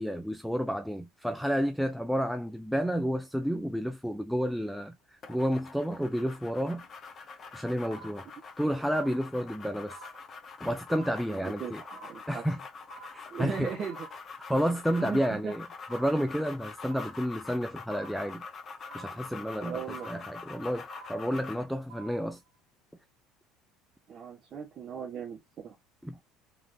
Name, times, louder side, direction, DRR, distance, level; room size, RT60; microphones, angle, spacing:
voice 1, 0.0-5.0 5.3-6.8 7.5-8.2 8.6-10.0 10.6-11.8 12.3-12.6 13.1-13.7 14.4-15.7 15.9-18.4 18.9-20.8 21.1-22.4 26.0-26.2, equal, ahead, 0.3 m, -30 dB
sound 1, 5.2-21.7, left 5 dB, 30° left, 1.0 m, -45 dB
sound 2, 7.9-8.6 8.9-9.6 9.9-10.6 10.9-11.6 11.9-12.6 12.9-13.6 13.9-14.6 14.9-15.6 15.9-16.6 16.9-17.6 17.9-18.6 18.9-19.6 19.9-20.6 20.9-21.6 21.9-22.6, right 5 dB, 85° right, 1.1 m, -52 dB
voice 2, 11.3-12.4 13.3-14.0 15.0-15.5 19.6-20.1 24.1-25.7, right 7 dB, 40° right, 1.1 m, -38 dB
3.6 x 3.3 x 3.4 m
cardioid pair, 135°, 0 cm